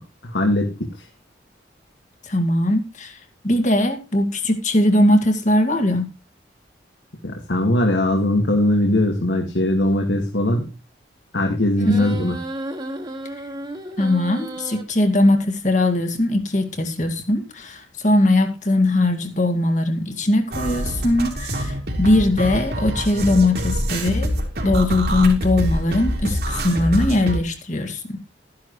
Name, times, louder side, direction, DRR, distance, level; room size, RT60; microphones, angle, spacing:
voice 1, 0.2-0.9 7.2-10.7 11.3-12.4, left 1 dB, 80° left, 2 dB, 2.1 m, -20 dB
voice 2, 2.2-6.1 11.9-12.1 14.0-24.4 24.6-28.2, left 1 dB, 45° left, 6 dB, 2.0 m, -20 dB
sound 1, 11.8-14.8, right 1 dB, 25° right, 2.0 m, -33 dB
sound 2, 20.5-27.4, equal, 60° right, 3.2 m, -25 dB
14.0 x 10.5 x 3.2 m, 0.28 s
head